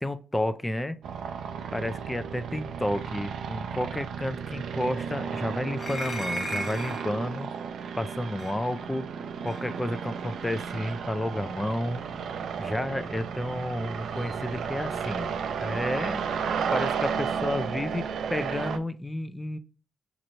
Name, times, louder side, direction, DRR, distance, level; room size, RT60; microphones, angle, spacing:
voice 1, 0.0-1.0 1.7-7.5 8.0-9.1 9.4-12.0 12.6-16.2 16.7-19.6, left 1 dB, 10° left, 11 dB, 0.5 m, -31 dB
sound 1, 1.0-18.8, right 6 dB, 70° right, 0.4 m, -33 dB
sound 2, 5.8-7.1 8.4-8.5 9.5-9.6, equal, 30° left, 0.9 m, -34 dB
6.4 x 3.0 x 2.6 m, 0.36 s
cardioid pair, 80°, 0 cm